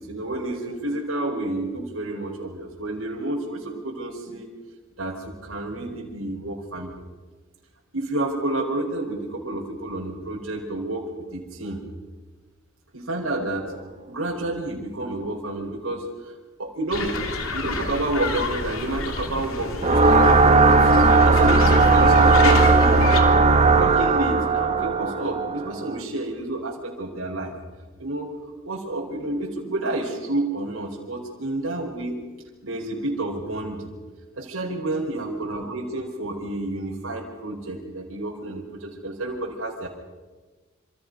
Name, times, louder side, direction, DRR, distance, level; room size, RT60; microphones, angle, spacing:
voice 1, 0.0-4.5 5.0-7.0 7.9-11.8 12.9-13.7 14.1-16.3 16.6-17.2 17.5-20.9 21.2-23.0 23.7-27.5 28.0-28.3 28.6-32.2 32.6-33.9 34.4-39.9, right 2 dB, 75° right, -2 dB, 4.7 m, -30 dB
sound 1, 16.9-23.2, left 3 dB, 80° left, 3.1 m, -29 dB
sound 2, 19.8-25.9, right 3 dB, 35° right, 1.4 m, -17 dB
27.5 x 27.5 x 5.5 m, 1.3 s
head